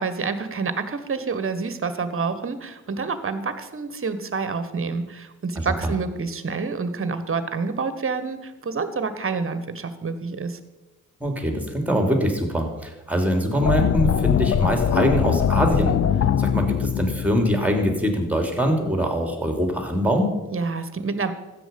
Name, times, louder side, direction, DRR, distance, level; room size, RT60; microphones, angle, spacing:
voice 1, 0.0-10.6 20.5-21.3, right 4 dB, 35° right, 11 dB, 1.5 m, -28 dB
voice 2, 11.2-16.0 16.4-20.3, equal, 5° right, 4 dB, 3.2 m, -23 dB
sound 1, 13.6-18.6, left 9 dB, 45° left, 0.6 m, -22 dB
13.0 x 8.9 x 5.4 m, 1.1 s
hypercardioid pair, 45°, 35 cm